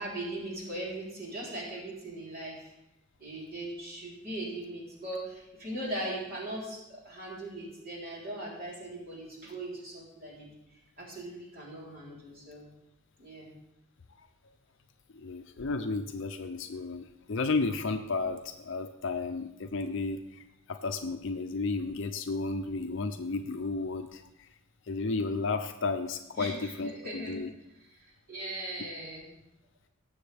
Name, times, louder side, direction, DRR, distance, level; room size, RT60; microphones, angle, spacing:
voice 1, 0.0-2.7 3.2-10.5 11.0-12.7 13.2-13.5 26.4-27.4 27.9-29.3, right 1 dB, 45° right, -5 dB, 3.8 m, -39 dB
voice 2, 15.1-24.5 24.9-27.5, left 3 dB, 55° left, 6 dB, 0.5 m, -33 dB
18.5 x 7.1 x 3.5 m, 0.88 s
head